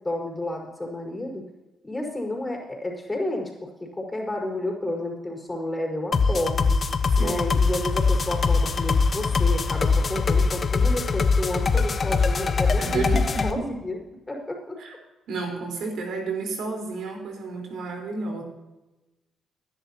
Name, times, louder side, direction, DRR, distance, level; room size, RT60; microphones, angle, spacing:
voice 1, 0.0-1.4 1.8-6.8 7.2-13.1 13.4-14.0 14.3-14.8, left 1 dB, 15° left, -1 dB, 4.8 m, -31 dB
sound 1, 6.1-13.5, left 4 dB, 40° left, 1.1 m, -22 dB
voice 2, 12.8-13.5 14.8-14.9 15.3-18.4, right 4 dB, 75° right, 1 dB, 4.2 m, -31 dB
21.5 x 10.5 x 2.9 m, 1.0 s
cardioid pair, 90°, 0 cm